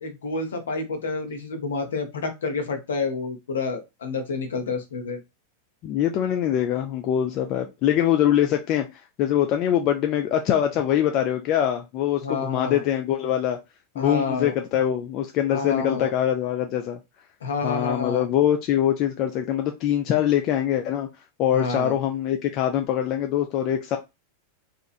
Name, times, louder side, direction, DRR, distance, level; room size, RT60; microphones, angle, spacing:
voice 1, 0.0-5.2 12.2-12.8 14.0-14.5 15.5-16.1 17.4-18.3 21.5-21.9, left 4 dB, 65° left, 6 dB, 0.7 m, -29 dB
voice 2, 5.8-13.6 14.0-17.0 17.6-21.1 21.4-24.0, left 10 dB, 40° left, 4 dB, 0.3 m, -23 dB
2.9 x 2.4 x 2.4 m, 0.23 s
figure-of-eight pair, 90°, 0 cm